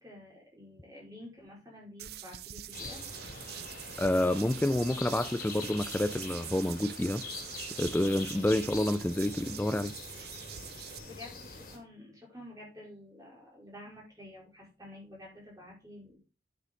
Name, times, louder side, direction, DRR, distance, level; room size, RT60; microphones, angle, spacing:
voice 1, 0.0-3.0 10.6-16.2, left 1 dB, 20° right, 4.7 m, -50 dB
sound 1, 2.0-11.0, right 12 dB, 55° right, 0.5 m, -44 dB
sound 2, 2.7-11.8, left 4 dB, 50° left, 2.9 m, -44 dB
sound 3, 3.1-8.4, right 4 dB, 90° right, 1.6 m, -53 dB
voice 2, 4.0-7.2 7.8-9.9, left 1 dB, 10° left, 0.3 m, -28 dB
9.3 x 6.5 x 3.8 m
head